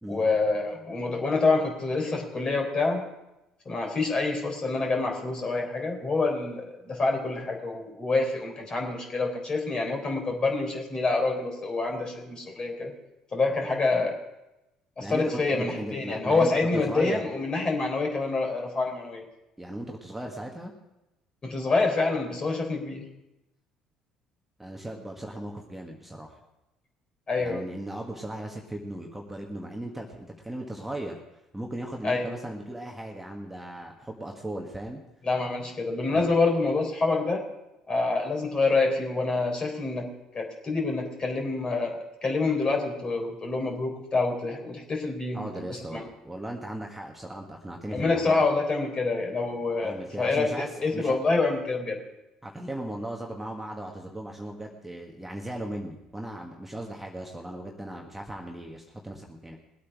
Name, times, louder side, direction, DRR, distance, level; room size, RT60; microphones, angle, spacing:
voice 1, 0.1-3.0 3.7-12.9 13.3-14.1 15.0-19.2 21.4-23.0 27.3-27.6 32.0-32.3 35.2-37.4 37.9-40.1 40.3-46.0 47.9-52.0, left 3 dB, 35° left, 2 dB, 3.8 m, -27 dB
voice 2, 15.0-17.3 19.6-20.7 24.6-26.4 27.4-31.2 31.5-35.0 36.2-36.3 45.3-48.5 49.8-51.2 52.4-59.6, right 1 dB, 10° right, 0 dB, 1.6 m, -37 dB
20.5 x 8.5 x 4.9 m, 0.94 s
figure-of-eight pair, 55°, 3 cm